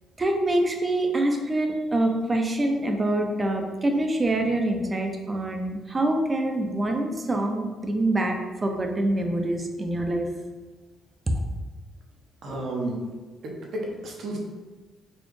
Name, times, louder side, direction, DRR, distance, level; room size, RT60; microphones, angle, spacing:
voice 1, 0.2-10.3, right 1 dB, 25° right, 3 dB, 0.5 m, -25 dB
voice 2, 12.4-13.0 13.4-14.4, right 1 dB, 65° right, -1 dB, 0.8 m, -32 dB
4.1 x 2.4 x 3.1 m, 1.3 s
cardioid pair, 90°, 0 cm